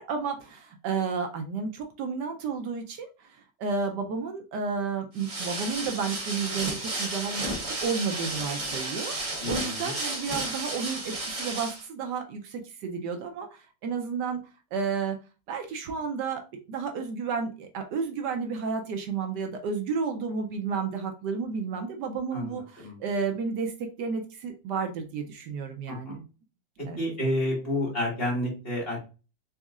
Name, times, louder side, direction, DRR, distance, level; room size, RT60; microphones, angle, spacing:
voice 1, 0.0-14.4 14.7-15.2 15.5-16.4 16.7-26.1 26.9-27.0, right 5 dB, 75° right, 4 dB, 1.2 m, -32 dB
sound 1, 5.1-11.8, right 2 dB, 35° right, 0.8 m, -33 dB
voice 2, 9.4-9.9 22.3-23.0 25.9-26.2 27.0-29.0, left 1 dB, 35° left, -4 dB, 1.7 m, -30 dB
4.2 x 3.5 x 2.3 m, 0.32 s
omnidirectional pair, 2.0 m